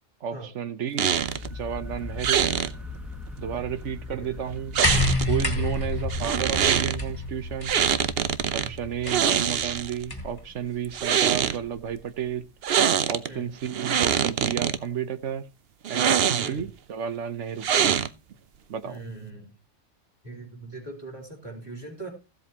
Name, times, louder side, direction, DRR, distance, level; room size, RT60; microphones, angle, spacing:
voice 1, 0.2-1.1 1.5-2.5 3.4-4.8 5.3-7.7 8.5-12.5 13.1-15.5 15.9-17.7 18.7-19.0, right 8 dB, 75° right, 1.3 m, -32 dB
sound 1, 1.0-1.5 2.2-2.7 4.7-5.4 6.1-7.0 7.6-8.7 9.0-10.0 10.8-11.6 12.6-13.3 13.6-14.8 15.8-16.7 17.6-18.3, right 8 dB, 60° right, 0.9 m, -24 dB
sound 2, 1.1-13.0, left 2 dB, ahead, 1.3 m, -42 dB
sound 3, 4.8-10.4 11.5-11.6, left 2 dB, 20° left, 1.9 m, -29 dB
voice 2, 18.8-19.5 20.2-22.1, right 2 dB, 20° right, 3.7 m, -40 dB
15.5 x 7.8 x 2.9 m
omnidirectional pair, 1.2 m